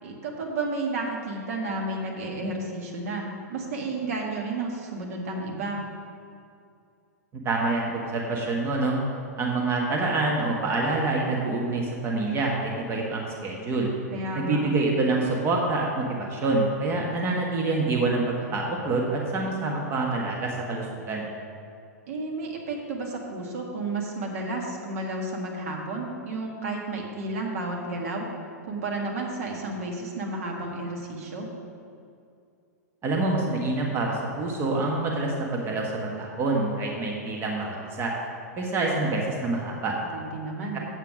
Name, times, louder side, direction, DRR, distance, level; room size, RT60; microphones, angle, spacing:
voice 1, 0.0-5.9 14.1-14.7 22.1-28.3 28.6-31.5 40.1-40.8, right 2 dB, 55° right, 0 dB, 1.6 m, -32 dB
voice 2, 7.4-9.0 9.4-13.9 14.3-21.3 33.0-38.1 38.6-40.0, right 2 dB, 25° right, -1 dB, 1.3 m, -26 dB
8.1 x 7.5 x 5.0 m, 2.4 s
figure-of-eight pair, 105°, 9 cm